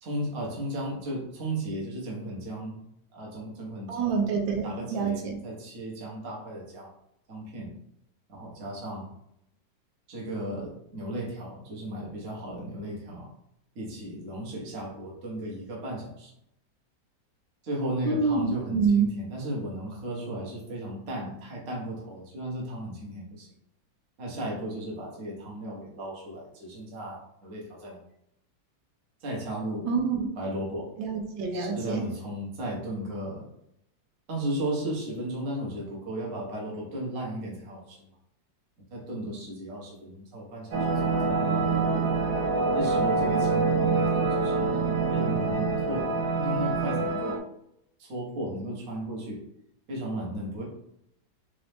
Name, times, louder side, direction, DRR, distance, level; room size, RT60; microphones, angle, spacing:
voice 1, 0.0-2.8 3.1-4.2 4.6-6.9 7.3-7.8 8.3-9.1 10.1-13.3 13.7-16.3 17.6-23.5 24.2-28.0 29.2-29.9 30.4-30.9 31.5-33.5 34.3-38.1 38.9-41.8 42.7-44.8 45.1-46.1 46.4-47.4 48.0-49.4 49.9-50.6, right 1 dB, 50° right, -3 dB, 1.2 m, -35 dB
voice 2, 3.9-5.4 18.0-19.1 29.9-30.3 31.0-32.1, right 5 dB, 90° right, 2 dB, 1.4 m, -26 dB
sound 1, 40.7-47.4, right 3 dB, 70° right, 1.2 m, -26 dB
4.0 x 2.6 x 3.3 m, 0.77 s
omnidirectional pair, 2.0 m